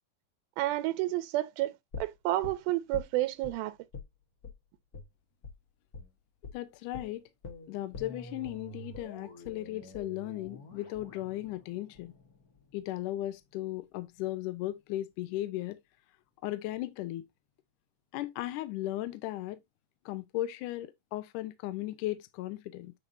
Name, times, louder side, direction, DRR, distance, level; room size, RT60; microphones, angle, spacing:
voice 1, 0.6-3.8, right 16 dB, 85° right, 2.4 m, -30 dB
sound 1, 1.9-3.5 3.9-4.1 4.4-4.6 4.9-5.1 5.4-5.6 5.9-6.1 6.4-6.6 6.9-12.9 13.2-13.3, left 3 dB, 65° left, 0.9 m, -46 dB
voice 2, 6.5-7.2 7.7-12.1 12.7-15.8 16.4-17.3 18.1-19.6 20.1-22.9, left 15 dB, 80° left, 1.8 m, -36 dB
9.0 x 4.6 x 2.6 m
omnidirectional pair, 4.3 m